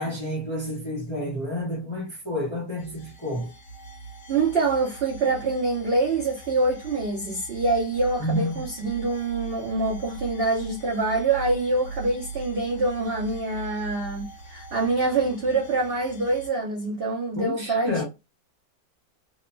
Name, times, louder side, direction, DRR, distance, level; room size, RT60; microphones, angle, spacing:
voice 1, 0.0-3.5 8.2-8.6 17.3-18.0, left 1 dB, 25° left, 0.6 m, -29 dB
sound 1, 2.8-16.5, right 5 dB, 75° left, 1.1 m, -40 dB
voice 2, 4.3-17.9, right 3 dB, 70° right, 0.5 m, -25 dB
2.9 x 2.1 x 2.5 m
omnidirectional pair, 1.9 m